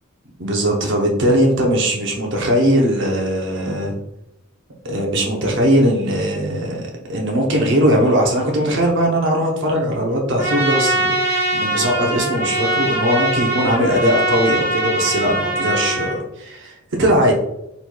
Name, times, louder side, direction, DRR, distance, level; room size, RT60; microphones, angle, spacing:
voice 1, 0.4-3.9 4.8-17.3, equal, 55° right, 0 dB, 0.7 m, -19 dB
Trumpet, 10.4-16.2, right 1 dB, 10° right, 1.2 m, -21 dB
4.5 x 4.1 x 2.2 m, 0.86 s
head